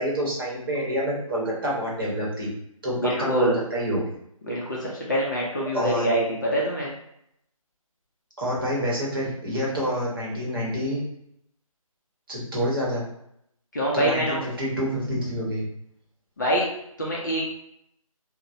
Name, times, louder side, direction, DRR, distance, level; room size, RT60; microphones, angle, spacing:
voice 1, 0.0-2.5 2.8-4.1 5.7-6.1 8.4-11.0 12.3-13.0 13.9-15.6, equal, 40° right, -5 dB, 0.9 m, -27 dB
voice 2, 3.0-3.6 4.4-6.9 13.7-14.4 16.4-16.6 17.0-17.4, equal, 30° left, -4 dB, 0.5 m, -25 dB
2.9 x 2.0 x 2.5 m, 0.75 s
figure-of-eight pair, 155°, 18 cm